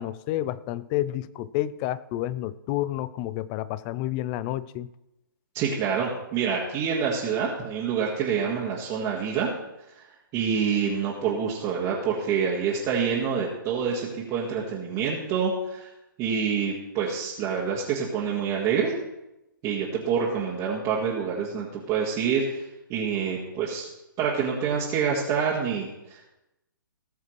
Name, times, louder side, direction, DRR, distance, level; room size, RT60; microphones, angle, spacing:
voice 1, 0.0-4.9, left 14 dB, 30° left, 18 dB, 0.4 m, -30 dB
voice 2, 5.5-9.5 9.9-10.1 10.3-15.9 16.2-18.9 19.6-22.6 22.9-23.9 24.2-26.3, right 6 dB, 30° right, -5 dB, 1.9 m, -27 dB
18.0 x 7.2 x 3.2 m, 0.92 s
hypercardioid pair, 130°, 11 cm